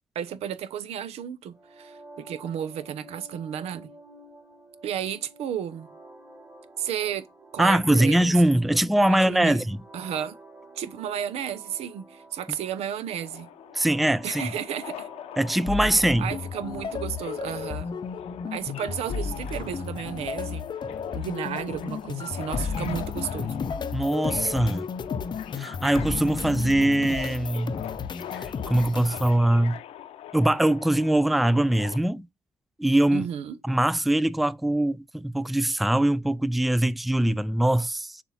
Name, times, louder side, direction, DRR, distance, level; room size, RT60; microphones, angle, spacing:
voice 1, 0.1-3.9 4.8-5.9 6.8-7.3 7.5-8.3 8.7-8.8 9.0-9.6 9.9-10.3 10.8-13.5 14.2-15.1 15.9-17.9 18.5-20.7 21.1-23.6 33.1-33.6, right 9 dB, 80° right, 0.7 m, -33 dB
sound 1, 1.5-17.5, right 2 dB, 25° right, 2.1 m, -50 dB
voice 2, 7.6-9.8 13.7-14.4 15.4-16.3 23.9-24.9 25.6-27.7 28.4-29.8 30.3-32.3 32.8-33.3 33.6-38.2, right 1 dB, ahead, 0.4 m, -22 dB
Subway metro underground, 13.2-32.0, left 11 dB, 80° left, 0.7 m, -42 dB
sound 2, 15.7-29.4, left 6 dB, 45° left, 0.6 m, -33 dB
6.8 x 2.5 x 5.6 m
supercardioid pair, 60°, 11 cm